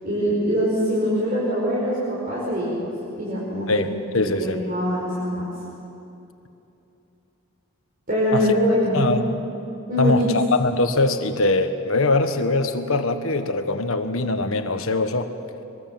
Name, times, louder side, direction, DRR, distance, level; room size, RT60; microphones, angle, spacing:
voice 1, 0.0-3.8 4.4-5.5 8.1-9.1 9.9-10.4, equal, 40° right, -7 dB, 5.2 m, -23 dB
voice 2, 3.7-4.6 8.3-8.6 8.9-9.3 10.0-15.3, left 2 dB, 65° left, 7 dB, 1.5 m, -22 dB
23.5 x 22.5 x 7.5 m, 2.8 s
head